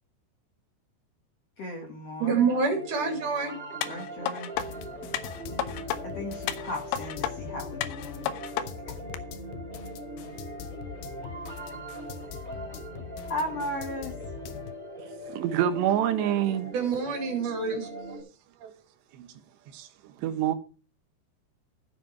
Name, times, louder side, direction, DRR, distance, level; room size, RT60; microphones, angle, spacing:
voice 1, 1.6-2.4 3.9-4.5 6.0-8.3 8.9-9.0 13.3-14.2, left 1 dB, 55° left, 1.8 m, -36 dB
sound 1, 2.2-18.2, right 2 dB, 10° right, 3.9 m, -41 dB
voice 2, 2.2-3.5 16.7-17.9, right 5 dB, 50° right, 3.6 m, -27 dB
sound 2, 3.8-4.7 5.1-6.0 6.5-7.3 7.8-8.7 9.1-9.2, left 10 dB, 90° left, 3.0 m, -32 dB
sound 3, 4.5-14.7, left 10 dB, 75° left, 2.4 m, -43 dB
voice 3, 15.3-16.7 18.6-18.7 19.1-19.3 19.7-20.5, right 10 dB, 85° right, 3.3 m, -27 dB
13.5 x 7.6 x 4.5 m
omnidirectional pair, 4.9 m